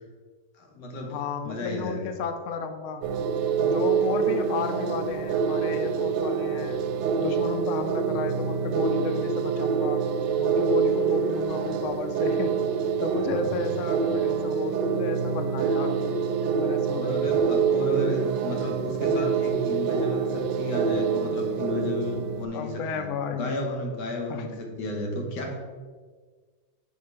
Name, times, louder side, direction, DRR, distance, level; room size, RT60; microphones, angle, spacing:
voice 1, 0.5-2.1 13.1-13.6 16.9-25.6, left 1 dB, 90° left, 1 dB, 1.8 m, -33 dB
voice 2, 1.1-3.1 3.6-6.8 7.2-10.1 10.4-12.7 13.0-16.0 16.5-17.2 22.5-23.6 24.3-24.5, left 5 dB, 70° left, 8 dB, 0.7 m, -32 dB
sound 1, 3.0-22.5, right 6 dB, 85° right, 1.2 m, -26 dB
5.8 x 4.5 x 4.6 m, 1.5 s
omnidirectional pair, 1.8 m